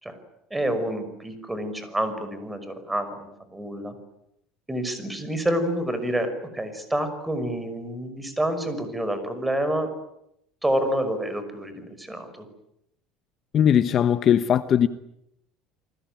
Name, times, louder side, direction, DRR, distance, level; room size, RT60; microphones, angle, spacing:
voice 1, 0.5-3.9 4.7-9.9 10.6-12.5, right 1 dB, 10° right, 5.7 m, -28 dB
voice 2, 13.5-14.9, left 9 dB, 40° left, 1.1 m, -19 dB
29.0 x 20.5 x 9.3 m
cardioid pair, 130°, 0 cm